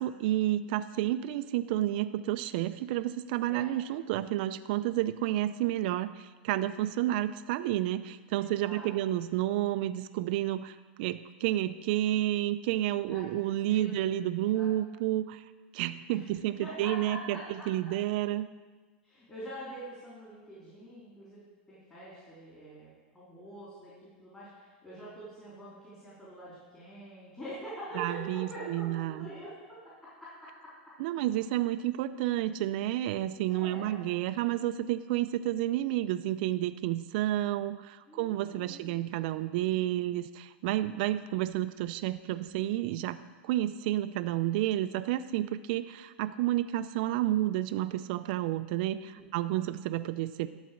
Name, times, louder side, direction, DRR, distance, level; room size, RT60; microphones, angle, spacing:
voice 1, 0.0-17.4 17.7-18.5 28.0-29.3 31.0-43.2 43.4-50.5, right 14 dB, 55° right, 11 dB, 0.4 m, -30 dB
voice 2, 8.4-8.9 13.1-13.3 13.7-13.9 14.5-14.7 16.1-16.3 16.6-17.7 19.0-21.4 21.7-22.9 23.1-30.7 33.5-34.0 38.1-39.0 49.1-49.4, right 1 dB, 15° left, -10 dB, 3.4 m, -45 dB
12.0 x 4.1 x 7.5 m, 1.4 s
hypercardioid pair, 120°, 6 cm